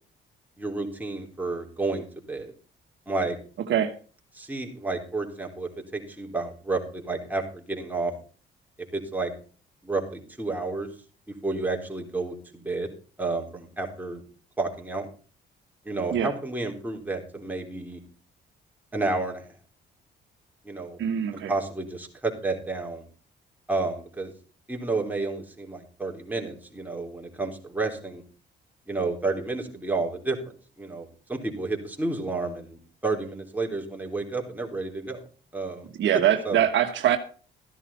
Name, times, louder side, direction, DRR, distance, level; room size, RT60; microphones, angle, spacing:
voice 1, 0.6-2.5 3.1-3.4 4.3-8.1 8.9-9.3 9.8-10.9 11.4-12.9 13.2-14.2 14.6-15.1 15.9-18.0 18.9-19.5 20.6-21.0 21.3-23.0 23.7-24.3 24.7-28.2 28.9-30.4 30.8-35.2 35.5-35.9 36.5-36.6, right 3 dB, 10° right, 0 dB, 3.8 m, -31 dB
voice 2, 21.0-21.5 36.0-37.2, right 10 dB, 70° right, 7 dB, 1.3 m, -23 dB
14.0 x 11.0 x 4.2 m, 0.39 s
cardioid pair, 90°, 20 cm